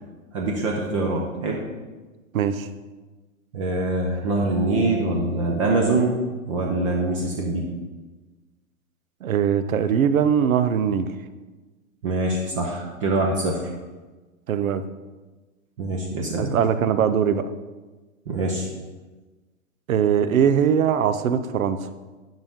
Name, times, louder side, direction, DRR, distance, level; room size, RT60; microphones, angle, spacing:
voice 1, 0.3-1.6 3.5-6.2 6.5-7.6 12.0-13.7 15.8-16.6 18.3-18.7, right 2 dB, 25° right, 0 dB, 0.6 m, -24 dB
voice 2, 2.3-2.7 9.2-11.1 14.5-14.8 16.4-17.5 19.9-21.9, right 8 dB, 80° right, 12 dB, 0.8 m, -21 dB
9.7 x 5.5 x 3.6 m, 1.2 s
hypercardioid pair, 165°, 40 cm